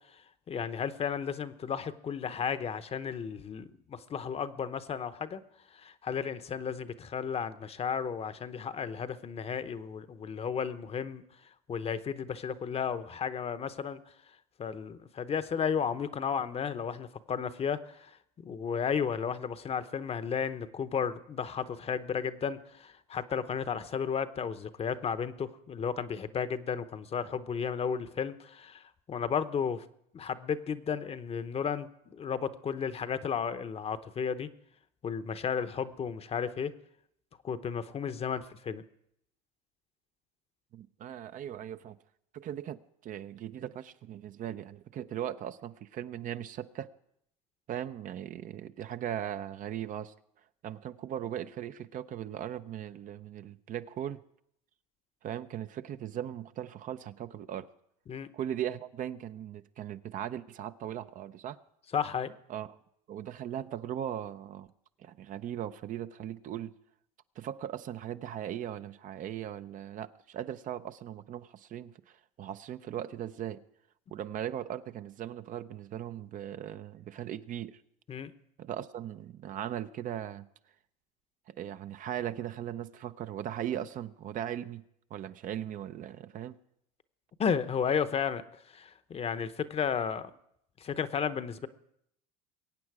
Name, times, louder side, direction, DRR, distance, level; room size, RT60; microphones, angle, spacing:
voice 1, 0.1-5.4 5.7-11.2 11.7-14.0 14.6-29.8 30.1-34.5 35.0-36.7 37.4-38.8 58.1-58.3 61.9-62.4 78.1-78.3 87.4-88.4 88.7-90.3 90.8-91.7, left 7 dB, 30° left, 12 dB, 0.8 m, -33 dB
voice 2, 40.7-42.0 42.3-46.9 47.7-50.1 50.6-54.2 55.2-57.7 58.3-61.6 62.5-62.8 63.1-64.7 65.0-66.7 67.4-73.6 74.1-77.8 78.6-80.5 81.5-84.8 85.1-86.6, right 10 dB, 45° right, 11 dB, 0.6 m, -38 dB
22.5 x 8.7 x 4.8 m, 0.74 s
supercardioid pair, 90°, 19 cm